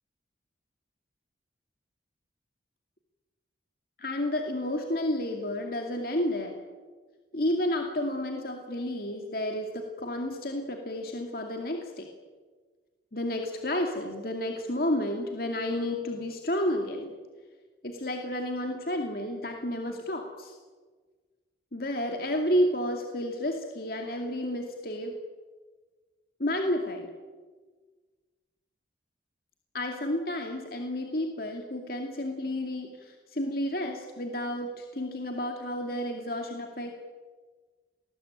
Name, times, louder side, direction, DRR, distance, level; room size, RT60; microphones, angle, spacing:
voice 1, 4.0-6.6 7.3-12.1 13.1-17.2 17.8-20.6 21.7-25.2 26.4-27.1 29.7-36.9, left 1 dB, 55° left, 3 dB, 2.5 m, -31 dB
27.5 x 20.5 x 9.0 m, 1.4 s
head